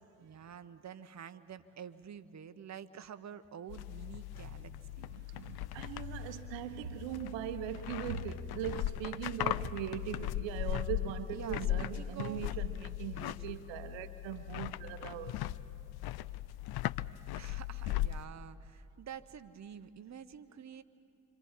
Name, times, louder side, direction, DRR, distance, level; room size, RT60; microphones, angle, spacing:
voice 1, 0.2-5.1 11.3-12.6 17.4-20.8, right 8 dB, 35° right, 1.0 m, -48 dB
sound 1, 3.7-18.3, left 14 dB, 55° left, 0.6 m, -38 dB
voice 2, 4.4-15.4, right 10 dB, 75° right, 1.1 m, -41 dB
26.5 x 25.5 x 5.7 m
hypercardioid pair, 45°, 45 cm